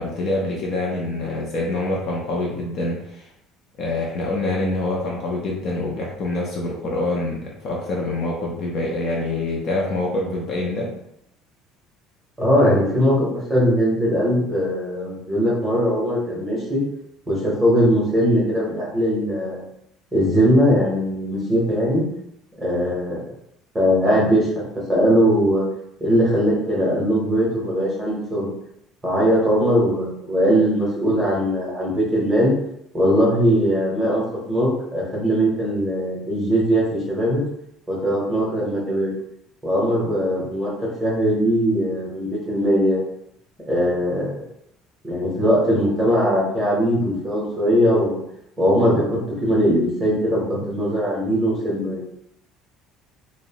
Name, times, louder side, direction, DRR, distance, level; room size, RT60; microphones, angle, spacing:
voice 1, 0.0-3.2 3.8-10.9, left 2 dB, 40° left, -2 dB, 0.4 m, -25 dB
voice 2, 12.4-16.8 17.3-19.6 20.1-22.0 22.6-23.2 23.7-24.6 24.9-25.6 26.0-28.5 29.0-32.5 32.9-34.2 34.5-37.4 37.9-39.1 39.6-40.7 41.0-43.0 43.7-44.3 45.0-48.2 48.6-52.0, equal, 10° right, -6 dB, 0.8 m, -20 dB
2.6 x 2.0 x 2.8 m, 0.78 s
cardioid pair, 180°, 0 cm